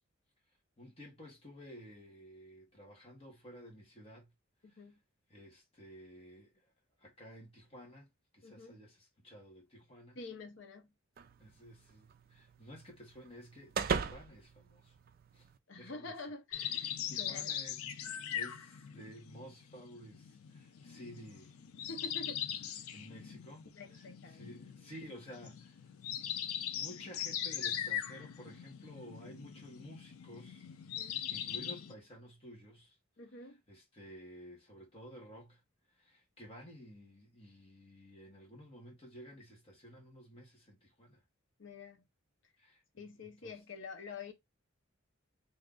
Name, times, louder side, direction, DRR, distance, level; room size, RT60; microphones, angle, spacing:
voice 1, 0.8-4.3 4.7-4.8 5.3-6.7 7.0-10.2 11.4-14.9 15.3-15.5 15.7-16.1 17.1-21.9 22.9-23.7 23.9-24.0 24.3-25.8 26.7-30.7 31.0-33.0 33.4-35.6 36.0-41.2 42.6-42.8 43.2-43.5, equal, 25° left, 1.2 m, -53 dB
voice 2, 4.6-5.0 8.4-8.8 10.1-10.9 15.7-17.6 21.8-22.4 23.6-24.5 31.0-31.1 33.2-33.6 41.6-42.0 42.9-44.3, left 3 dB, 60° left, 0.8 m, -48 dB
sound 1, 11.2-15.6, right 6 dB, 45° right, 0.3 m, -40 dB
sound 2, 16.5-31.9, left 9 dB, 90° left, 0.4 m, -41 dB
2.8 x 2.4 x 3.7 m
head